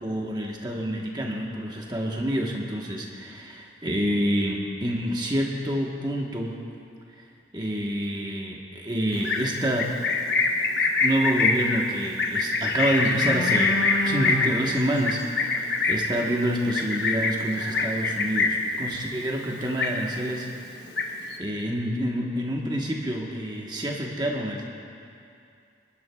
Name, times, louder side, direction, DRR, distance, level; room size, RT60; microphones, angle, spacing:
voice 1, 0.0-6.6 7.5-10.0 11.0-20.5 21.4-24.6, equal, 25° right, -1 dB, 1.2 m, -28 dB
Livestock farm animals working animals, 9.1-18.7 19.1-19.4 19.6-20.3 20.7-21.4, left 3 dB, 65° left, 1.1 m, -25 dB
28.5 x 11.0 x 2.3 m, 2.5 s
head